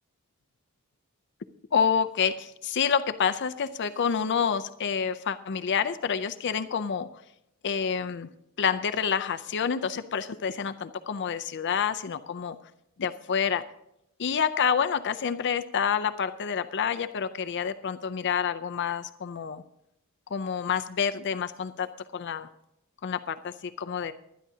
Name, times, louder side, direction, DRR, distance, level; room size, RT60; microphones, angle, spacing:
voice 1, 1.7-7.1 7.6-8.3 8.6-12.6 13.0-13.6 14.2-19.6 20.3-22.5 23.0-24.1, left 7 dB, 55° left, 10 dB, 0.5 m, -28 dB
23.5 x 10.0 x 2.8 m, 0.82 s
head